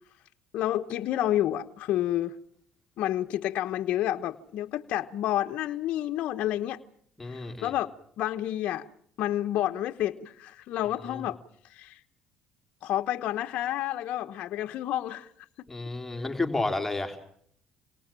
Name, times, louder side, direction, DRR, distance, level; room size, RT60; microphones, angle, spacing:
voice 1, 0.5-2.3 3.0-6.8 7.2-8.9 9.2-11.4 11.6-12.0 12.8-15.3, left 13 dB, 70° left, 6 dB, 1.1 m, -29 dB
voice 2, 7.2-7.7 11.1-11.2 15.7-17.2, left 2 dB, 10° left, 4 dB, 3.7 m, -31 dB
28.0 x 20.5 x 7.5 m, 0.66 s
cardioid pair, 90°, 2 cm